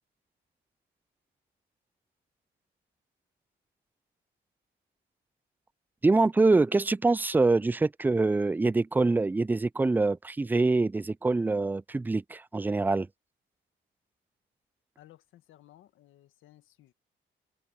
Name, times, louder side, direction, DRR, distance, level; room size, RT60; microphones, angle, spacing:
voice 1, 6.0-13.1, right 3 dB, 10° right, 0.3 m, -25 dB
voice 2, 15.0-16.9, left 14 dB, 85° left, 1.7 m, -57 dB
cardioid pair, 90°, 20 cm